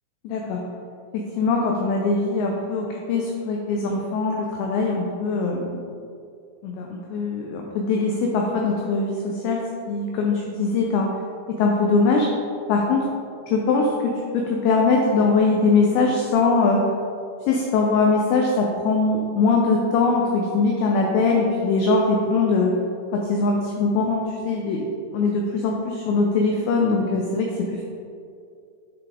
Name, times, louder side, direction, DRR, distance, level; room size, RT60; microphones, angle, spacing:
voice 1, 0.2-0.6 1.1-5.7 6.6-11.1 11.5-12.3 12.7-13.1 13.5-16.9 17.5-22.7 23.1-24.9 25.1-27.8, left 3 dB, 90° left, 0 dB, 2.5 m, -22 dB
9.2 x 4.0 x 3.6 m, 2.4 s
omnidirectional pair, 5.7 m